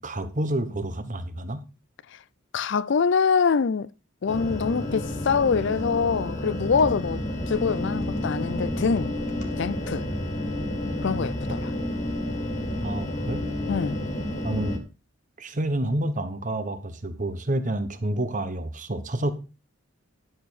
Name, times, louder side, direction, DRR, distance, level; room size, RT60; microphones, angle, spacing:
voice 1, 0.0-1.6 12.8-13.5 14.4-14.8 15.4-19.3, right 1 dB, 40° right, 1.1 m, -29 dB
voice 2, 2.5-3.9 4.2-9.1 9.5-10.1 11.0-11.7 13.7-14.0, left 5 dB, 60° left, 0.4 m, -24 dB
sound 1, 4.3-14.8, left 1 dB, 35° left, 1.8 m, -30 dB
11.0 x 6.7 x 4.1 m
head